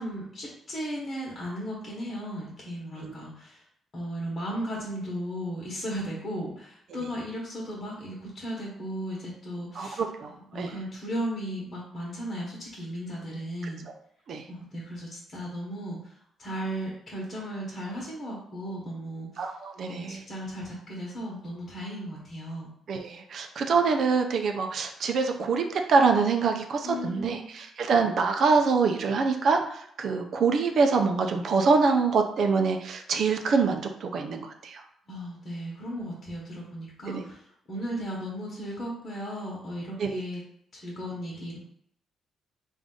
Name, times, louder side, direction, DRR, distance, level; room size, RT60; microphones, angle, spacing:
voice 1, 0.0-3.6 3.9-13.8 14.5-19.5 19.8-22.7 26.8-27.5 35.1-40.4 40.7-41.6, equal, 45° left, -5 dB, 1.2 m, -36 dB
voice 2, 9.8-10.7 14.3-14.4 19.4-20.2 22.9-34.8 37.1-37.2 40.0-40.2, right 4 dB, 60° right, 4 dB, 0.5 m, -25 dB
3.5 x 2.6 x 3.8 m, 0.68 s
cardioid pair, 90°, 0 cm